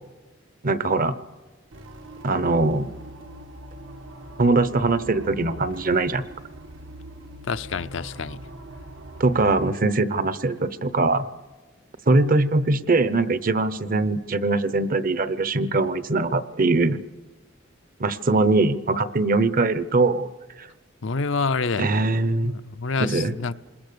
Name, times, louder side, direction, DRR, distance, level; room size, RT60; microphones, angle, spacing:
voice 1, 0.6-1.1 2.2-2.9 4.4-6.2 9.2-11.3 12.1-17.0 18.0-20.3 20.6-20.7 21.8-22.5 23.0-23.3, right 3 dB, 45° right, 0.8 m, -22 dB
sound 1, 1.7-9.7, right 1 dB, 80° right, 1.4 m, -42 dB
voice 2, 7.5-8.4 21.0-21.9 22.4-23.5, left 4 dB, 75° left, 0.6 m, -27 dB
27.0 x 20.5 x 6.8 m
head